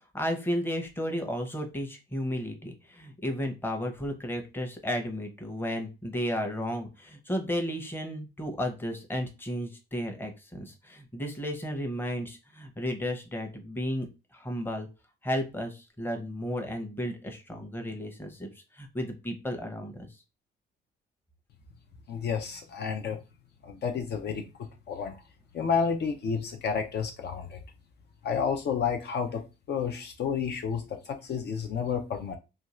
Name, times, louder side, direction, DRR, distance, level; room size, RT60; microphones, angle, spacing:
voice 1, 0.0-14.1 14.3-14.9 15.2-18.5 18.7-20.1, equal, 10° left, 0.7 m, -33 dB
voice 2, 22.1-23.2 23.6-25.2 25.5-27.6 28.2-32.4, left 6 dB, 55° left, 0.5 m, -31 dB
2.5 x 2.3 x 3.0 m
cardioid pair, 90°, 20 cm